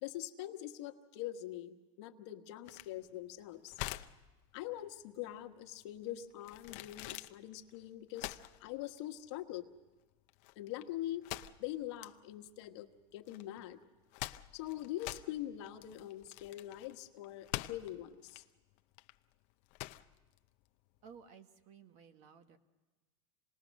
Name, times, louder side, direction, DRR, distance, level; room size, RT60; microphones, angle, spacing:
voice 1, 0.0-3.8 4.5-9.7 10.6-11.2 11.6-13.8 14.5-18.4, left 13 dB, 70° left, 6 dB, 1.3 m, -43 dB
sound 1, 2.7-21.2, left 19 dB, 55° left, 0.6 m, -47 dB
voice 2, 21.0-22.6, right 6 dB, 50° right, 10 dB, 1.4 m, -56 dB
27.0 x 19.5 x 6.4 m, 1.2 s
supercardioid pair, 145°, 15 cm